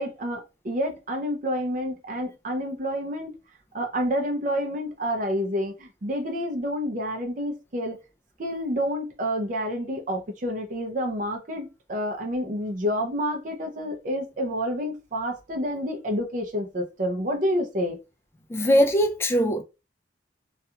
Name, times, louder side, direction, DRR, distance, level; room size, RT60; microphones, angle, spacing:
voice 1, 0.0-3.3 3.7-8.0 8.4-18.0, equal, 45° right, 0.5 m, -29 dB
voice 2, 18.5-19.6, equal, 15° left, 0.3 m, -21 dB
2.4 x 2.3 x 2.7 m
head